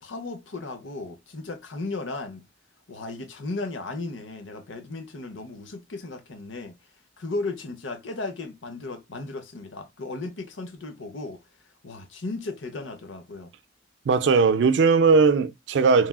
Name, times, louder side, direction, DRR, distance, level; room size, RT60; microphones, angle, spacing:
voice 1, 0.0-2.4 2.9-6.7 7.2-11.4 11.8-13.5, left 3 dB, 90° left, 0.8 m, -35 dB
voice 2, 14.1-16.1, right 4 dB, 70° right, 0.4 m, -19 dB
3.3 x 2.3 x 2.2 m
head